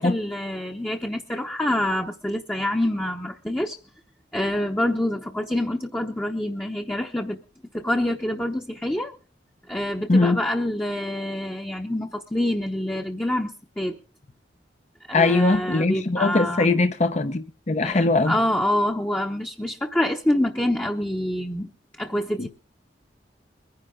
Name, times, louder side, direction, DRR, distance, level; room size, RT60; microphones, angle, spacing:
voice 1, 0.0-3.8 4.3-7.4 7.7-9.1 9.7-14.0 15.1-16.6 17.8-21.7 22.0-22.5, left 1 dB, 10° left, 0.9 m, -26 dB
voice 2, 10.1-10.4 15.1-18.3 22.4-22.5, left 3 dB, 40° left, 0.8 m, -21 dB
22.5 x 10.5 x 3.7 m
head